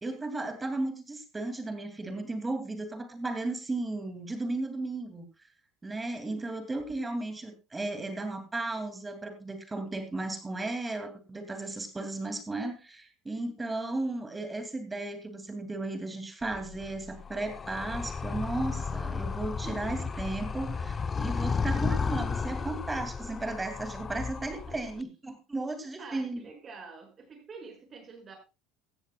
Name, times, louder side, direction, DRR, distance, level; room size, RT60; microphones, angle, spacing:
voice 1, 0.0-5.3 5.8-26.4, right 2 dB, 15° right, 7 dB, 2.5 m, -35 dB
voice 2, 6.1-6.4 19.6-20.1 24.5-25.0 25.8-28.4, right 4 dB, 35° right, 4 dB, 6.3 m, -47 dB
Animal, 16.4-25.0, left 5 dB, 30° left, 0.8 m, -33 dB
16.5 x 14.0 x 2.3 m, 0.29 s
supercardioid pair, 85°, 0 cm